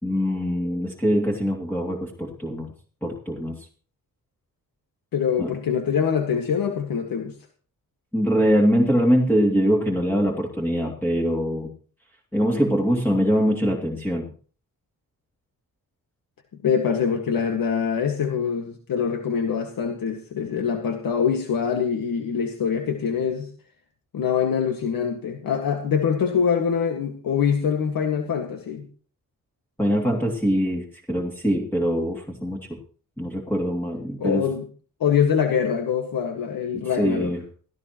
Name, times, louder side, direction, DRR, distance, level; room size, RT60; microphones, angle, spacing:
voice 1, 0.0-2.7 3.0-3.7 5.4-5.5 8.1-11.7 12.3-14.3 29.8-32.8 33.2-34.5 36.7-37.4, equal, 5° left, -1 dB, 2.7 m, -23 dB
voice 2, 5.1-7.3 16.6-23.5 24.1-28.9 34.2-34.6 35.0-37.3, left 7 dB, 75° left, 3 dB, 1.9 m, -24 dB
17.0 x 14.5 x 3.1 m, 0.41 s
wide cardioid pair, 115°, 34 cm